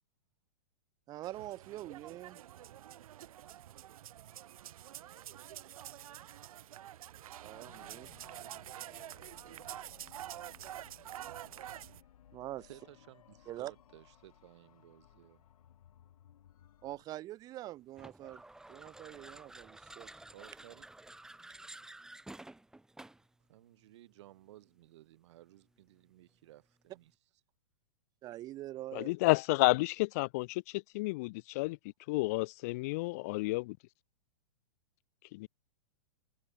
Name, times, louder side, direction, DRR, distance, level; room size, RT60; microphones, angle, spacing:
voice 1, 1.1-2.4 7.4-8.1 12.3-12.7 13.5-13.7 16.8-18.4 18.7-20.1 28.2-29.1, right 15 dB, 20° right, 1.1 m, -44 dB
sound 1, 1.2-12.0, right 12 dB, 70° right, 0.8 m, -48 dB
sound 2, 7.5-17.1, left 10 dB, 70° left, 3.8 m, -62 dB
voice 2, 12.6-15.4 20.3-20.9 23.4-27.1, right 15 dB, 50° right, 3.5 m, -57 dB
sound 3, 17.9-23.3, right 2 dB, 5° right, 2.4 m, -51 dB
voice 3, 28.9-31.8 32.1-33.8 35.3-35.5, left 23 dB, 25° left, 0.3 m, -31 dB
hypercardioid pair, 165°, 19 cm